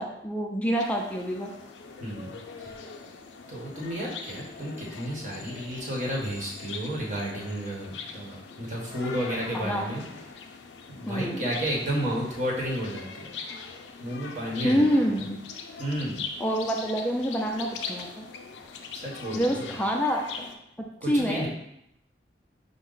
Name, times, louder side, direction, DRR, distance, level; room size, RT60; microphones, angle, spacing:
voice 1, 0.0-1.5 9.5-9.9 11.1-11.5 14.6-15.4 16.4-18.3 19.3-20.5 21.0-21.5, equal, 10° left, 1 dB, 0.3 m, -27 dB
sound 1, 0.7-20.6, left 5 dB, 90° left, 0.4 m, -42 dB
voice 2, 2.0-2.7 3.5-10.0 11.0-13.3 14.0-15.1 15.8-16.2 19.0-19.8 21.0-21.5, equal, 45° right, -3 dB, 1.0 m, -32 dB
5.1 x 2.1 x 3.8 m, 0.78 s
head